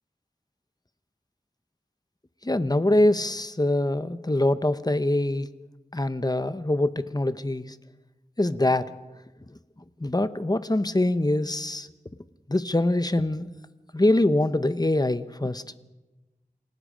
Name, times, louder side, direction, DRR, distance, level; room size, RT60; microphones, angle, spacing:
voice 1, 2.4-5.5 5.9-7.6 8.4-8.9 10.0-11.9 12.5-13.5 13.9-15.6, left 1 dB, 25° left, 12 dB, 0.9 m, -24 dB
28.0 x 18.0 x 5.1 m, 1.1 s
wide cardioid pair, 50°, 15 cm